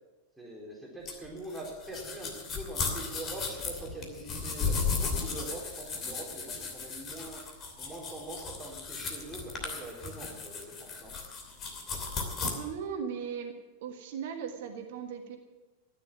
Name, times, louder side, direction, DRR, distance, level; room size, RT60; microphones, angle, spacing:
voice 1, 0.4-7.4 7.8-11.1, right 2 dB, 5° right, -4 dB, 3.9 m, -43 dB
sound 1, 1.1-12.5, left 5 dB, 30° left, 2.8 m, -35 dB
voice 2, 12.4-13.5 13.8-15.4, right 7 dB, 50° right, 5 dB, 1.5 m, -37 dB
15.0 x 10.0 x 7.1 m, 1.1 s
figure-of-eight pair, 90°, 0 cm